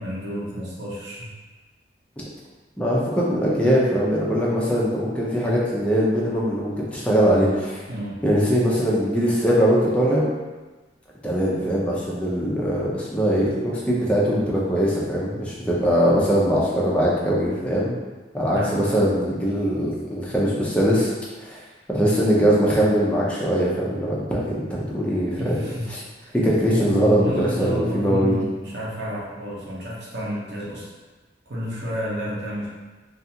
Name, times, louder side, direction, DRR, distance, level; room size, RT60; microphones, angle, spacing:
voice 1, 0.0-1.3 7.9-8.2 18.5-19.1 25.4-25.9 26.7-30.9 31.5-32.7, equal, 75° right, -6 dB, 0.7 m, -30 dB
voice 2, 2.8-7.8 8.2-10.2 11.2-17.9 18.3-21.1 21.4-21.6 21.9-26.0 26.3-28.4, equal, 5° left, -6 dB, 0.5 m, -21 dB
2.4 x 2.4 x 2.7 m, 1.2 s
head